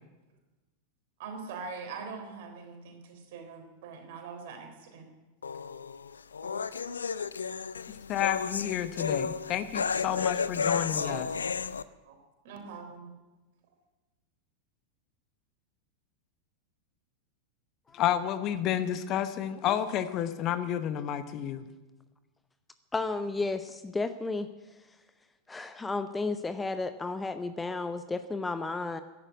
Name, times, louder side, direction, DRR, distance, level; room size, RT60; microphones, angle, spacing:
voice 1, 1.2-5.1 6.4-6.6 10.7-11.3 12.0-12.2 12.4-13.1, right 4 dB, 55° right, 4 dB, 3.8 m, -43 dB
sound 1, 5.4-11.8, left 6 dB, 70° left, 0.5 m, -32 dB
voice 2, 8.1-11.3 17.9-21.7, left 10 dB, 35° left, 11 dB, 1.0 m, -30 dB
voice 3, 22.9-24.5 25.5-29.0, left 3 dB, 10° left, 11 dB, 0.7 m, -33 dB
14.0 x 11.0 x 9.3 m, 1.2 s
figure-of-eight pair, 90°, 0 cm